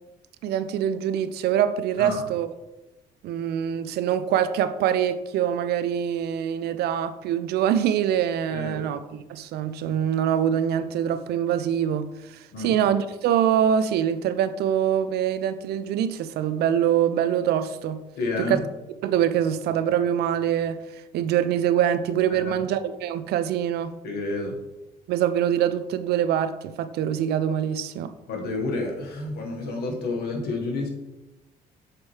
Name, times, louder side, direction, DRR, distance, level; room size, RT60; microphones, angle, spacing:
voice 1, 0.4-2.5 3.2-18.0 18.4-18.6 19.0-23.9 25.1-28.1, right 9 dB, 75° right, 0.5 m, -24 dB
voice 2, 8.5-8.8 12.5-12.7 18.2-18.6 22.3-22.5 24.0-24.6 28.3-30.9, left 2 dB, 75° left, 1.6 m, -29 dB
7.4 x 4.2 x 3.3 m
cardioid pair, 85°, 17 cm